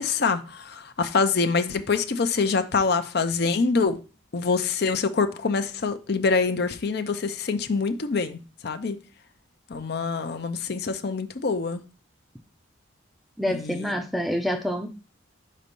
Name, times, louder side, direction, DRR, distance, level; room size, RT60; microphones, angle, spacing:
voice 1, 0.0-4.0 4.3-9.0 9.7-11.8 13.5-13.9, left 4 dB, 50° left, 0.6 m, -25 dB
voice 2, 13.4-14.9, equal, ahead, 0.5 m, -27 dB
5.2 x 4.2 x 5.2 m
head